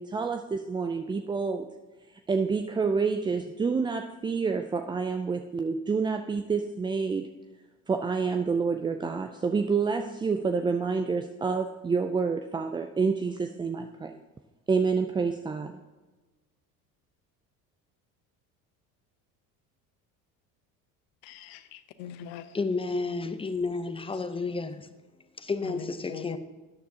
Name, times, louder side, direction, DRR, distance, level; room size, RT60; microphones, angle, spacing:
voice 1, 0.0-1.7 2.3-7.3 7.9-14.1 14.7-15.8, right 5 dB, 10° right, 6 dB, 0.3 m, -28 dB
voice 2, 21.2-22.5 25.6-26.4, left 10 dB, 70° left, 12 dB, 0.9 m, -42 dB
voice 3, 22.5-24.9 25.4-26.4, left 3 dB, 10° left, 10 dB, 0.8 m, -31 dB
12.5 x 9.2 x 2.8 m, 1.2 s
hypercardioid pair, 75°, 43 cm